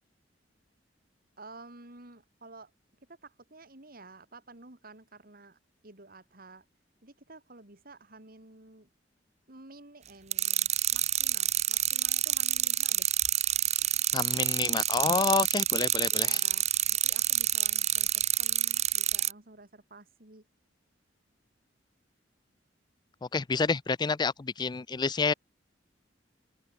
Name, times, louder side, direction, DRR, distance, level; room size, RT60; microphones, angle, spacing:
voice 1, 1.4-2.7 3.1-6.7 7.0-8.9 9.5-13.1 16.1-20.4, right 2 dB, 55° right, 4.0 m, -52 dB
sound 1, 10.3-19.3, right 12 dB, 40° right, 0.9 m, -28 dB
voice 2, 14.1-16.4 23.3-25.3, left 4 dB, 25° left, 0.4 m, -28 dB
open air
head